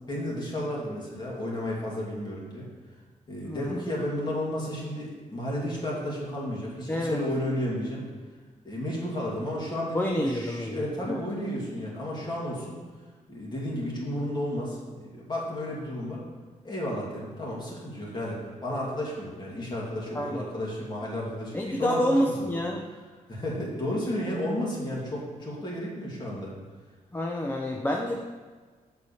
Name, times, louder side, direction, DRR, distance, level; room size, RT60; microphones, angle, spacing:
voice 1, 0.1-2.7 3.3-8.1 8.6-12.8 13.3-16.2 16.6-22.5 23.3-26.6, left 1 dB, 30° left, -4 dB, 2.5 m, -32 dB
voice 2, 3.4-3.8 6.9-7.2 9.9-11.2 20.1-20.4 21.5-22.9 27.1-28.2, equal, 15° left, 0 dB, 0.6 m, -28 dB
7.1 x 4.9 x 7.0 m, 1.4 s
wide cardioid pair, 125°, 14 cm